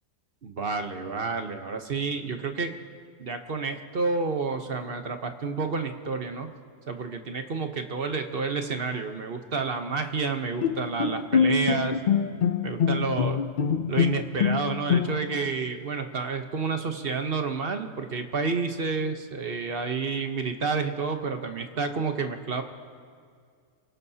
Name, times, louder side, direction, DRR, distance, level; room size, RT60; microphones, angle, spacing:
voice 1, 0.4-2.7 3.2-6.5 6.9-12.0 12.6-13.4 13.9-22.6, right 4 dB, 45° right, 6 dB, 1.1 m, -30 dB
Bowed string instrument, 10.6-15.5, left 6 dB, 65° left, 0.4 m, -25 dB
28.0 x 17.5 x 2.8 m, 2.1 s
omnidirectional pair, 1.4 m